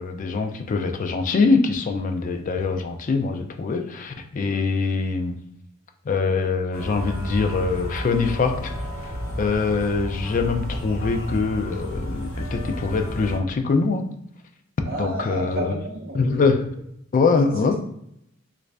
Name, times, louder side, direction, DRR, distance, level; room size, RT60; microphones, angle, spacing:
voice 1, 0.0-5.4 6.1-14.0 15.0-15.7 16.1-16.7 17.1-17.7, left 4 dB, 40° left, 5 dB, 0.3 m, -23 dB
sound 1, 6.7-13.4, equal, 85° left, 0.7 m, -32 dB
voice 2, 14.9-16.5, right 2 dB, 50° right, -4 dB, 0.6 m, -31 dB
3.1 x 2.5 x 3.3 m, 0.73 s
head